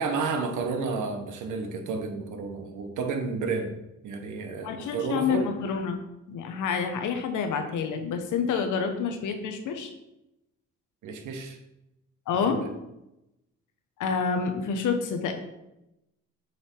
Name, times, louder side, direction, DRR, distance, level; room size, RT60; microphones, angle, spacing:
voice 1, 0.0-3.7 4.0-5.5 11.0-11.6 12.5-12.7, right 4 dB, 80° right, 5 dB, 1.1 m, -31 dB
voice 2, 4.6-6.0 6.3-9.9 12.3-12.6 14.0-15.3, left 6 dB, 80° left, 6 dB, 1.1 m, -28 dB
7.8 x 3.4 x 4.5 m, 0.90 s
cardioid pair, 90°, 30 cm